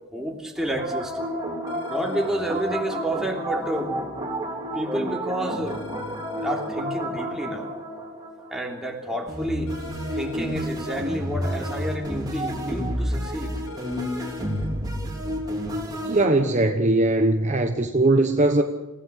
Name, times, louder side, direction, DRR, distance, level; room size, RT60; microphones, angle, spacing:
voice 1, 0.1-1.2 1.9-4.0 4.7-5.8 6.3-7.7 8.5-9.7 10.1-13.5, right 1 dB, ahead, 0 dB, 3.3 m, -30 dB
sound 1, 0.6-8.8 9.3-16.7, equal, 20° right, 3.8 m, -30 dB
sound 2, 1.7-2.7 5.7-6.7 9.7-10.7 13.7-14.7, left 7 dB, 75° left, 4.8 m, -43 dB
voice 2, 16.1-18.6, right 2 dB, 35° right, 5 dB, 1.1 m, -20 dB
28.0 x 16.5 x 6.5 m, 1.2 s
head